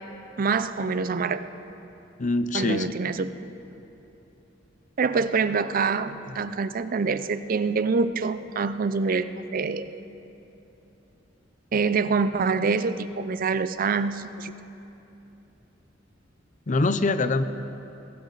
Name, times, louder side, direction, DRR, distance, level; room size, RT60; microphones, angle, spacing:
voice 1, 0.4-1.5 2.5-3.3 5.0-10.0 11.7-14.5, right 4 dB, 50° right, 13 dB, 0.5 m, -25 dB
voice 2, 2.2-3.0 6.4-6.5 16.7-17.4, left 3 dB, 40° left, 12 dB, 0.6 m, -24 dB
21.0 x 17.0 x 4.0 m, 3.0 s
head